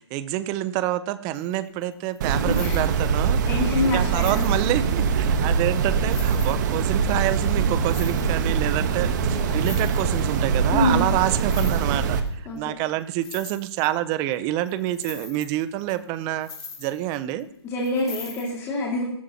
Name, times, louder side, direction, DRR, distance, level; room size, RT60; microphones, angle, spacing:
voice 1, 0.0-3.4 3.8-16.5 16.8-17.5, right 14 dB, 25° right, 14 dB, 0.8 m, -27 dB
sound 1, 1.3-1.6 1.8-3.3 3.8-5.3 5.7-5.8 6.1-7.1 7.7-8.7 9.0-9.1 9.3-10.4 11.3-12.3 12.6-12.7 13.0-14.3 14.6-17.4 17.8-18.5, left 5 dB, 60° left, 4.5 m, -42 dB
sound 2, 2.2-12.2, right 6 dB, 40° right, 1.4 m, -23 dB
voice 2, 3.5-4.5 9.3-9.6 10.7-11.2 12.5-12.8 17.6-19.0, left 2 dB, 20° left, -4 dB, 2.7 m, -26 dB
17.0 x 13.5 x 3.1 m, 0.77 s
figure-of-eight pair, 135°, 14 cm